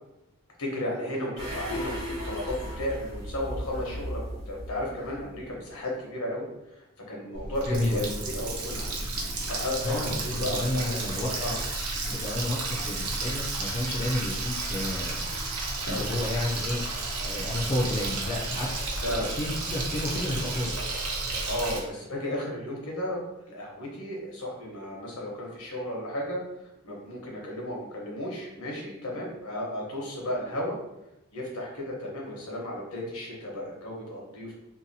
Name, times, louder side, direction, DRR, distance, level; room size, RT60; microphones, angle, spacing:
voice 1, 0.6-2.0 2.2-6.5 7.1-8.0 8.3-8.9 9.5-11.0 11.4-11.6 15.9-16.0 19.0-19.3 21.5-23.2 23.5-26.4 26.8-30.8 31.3-34.5, left 1 dB, 80° left, -2 dB, 0.9 m, -34 dB
sound 1, 1.4-5.6 6.0-6.1, equal, 55° right, 1.1 m, -36 dB
Water tap faucet, 7.3-21.8, right 2 dB, 85° right, 0.6 m, -32 dB
voice 2, 7.7-8.1 9.8-11.3 12.0-15.2 15.9-16.8 17.2-18.7 19.1-20.8, left 1 dB, 30° left, -4 dB, 0.3 m, -31 dB
2.7 x 2.2 x 2.6 m, 0.92 s
head